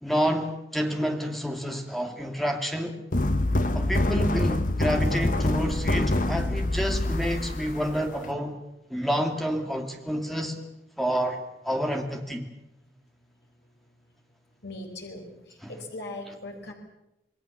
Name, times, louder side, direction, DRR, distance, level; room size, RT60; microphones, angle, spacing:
voice 1, 0.0-3.0 3.7-8.6 8.9-10.6 11.0-12.5, equal, ahead, 2.4 m, -29 dB
sound 1, 3.1-8.3, left 1 dB, 45° left, 1.1 m, -25 dB
voice 2, 14.6-16.7, left 2 dB, 75° left, 4.6 m, -39 dB
27.5 x 20.5 x 7.3 m
head